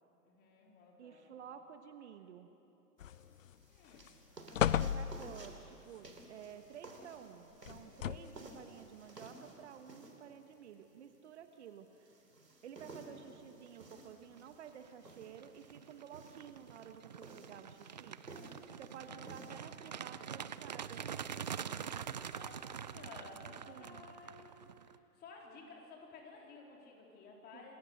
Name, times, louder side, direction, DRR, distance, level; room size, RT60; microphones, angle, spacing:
voice 1, 0.2-1.4 3.7-4.2 13.0-13.3 19.0-19.4 22.1-27.8, left 3 dB, 20° left, -1 dB, 3.9 m, -55 dB
voice 2, 1.0-2.5 4.6-12.2 12.6-18.2 18.8-21.0 23.7-24.0 27.5-27.8, right 8 dB, 45° right, 8 dB, 1.3 m, -52 dB
sound 1, 3.0-3.5 3.9-4.1 4.5-5.6 7.7-8.5 9.3-9.4, left 10 dB, 55° left, 0.7 m, -34 dB
sound 2, 3.0-21.5, right 2 dB, 85° right, 3.7 m, -56 dB
sound 3, 14.1-14.4 14.9-25.0, right 8 dB, 30° right, 0.4 m, -45 dB
28.0 x 21.0 x 6.6 m, 2.9 s
figure-of-eight pair, 125°, 47 cm